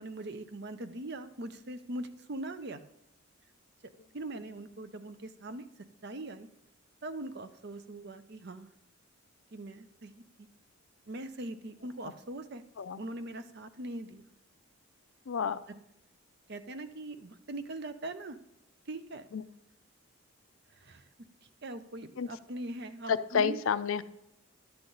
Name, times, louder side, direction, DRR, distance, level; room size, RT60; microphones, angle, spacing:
voice 1, 0.0-2.8 4.1-5.6 6.0-6.5 7.0-8.7 9.5-10.5 11.1-12.6 13.0-14.3 16.5-18.4 18.9-19.3 20.7-21.1 21.6-23.6, right 1 dB, 50° right, 10 dB, 0.6 m, -41 dB
voice 2, 15.3-15.6 19.3-19.4 22.2-22.3 23.1-24.0, left 6 dB, 70° left, 14 dB, 0.4 m, -30 dB
11.5 x 8.0 x 3.9 m, 0.80 s
head